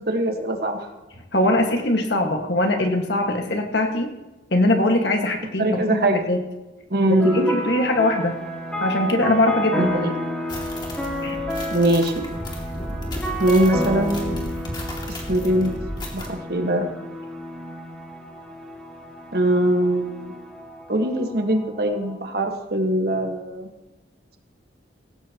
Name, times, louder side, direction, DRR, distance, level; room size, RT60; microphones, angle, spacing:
voice 1, 0.1-0.9 5.6-6.2 6.9-7.7 9.8-10.1 11.7-12.2 13.4-14.5 15.1-15.7 16.1-16.9 19.3-20.3 20.9-23.7, right 1 dB, 55° right, 4 dB, 1.6 m, -22 dB
voice 2, 1.3-4.1 4.5-6.0 6.3-6.4 7.0-8.4 8.8-9.9 11.2-11.4, left 1 dB, 65° left, 3 dB, 1.8 m, -21 dB
sound 1, 7.2-22.2, equal, 5° left, 2.0 m, -31 dB
sound 2, 10.5-16.3, equal, 25° left, 2.4 m, -33 dB
17.5 x 16.5 x 3.0 m, 1.1 s
head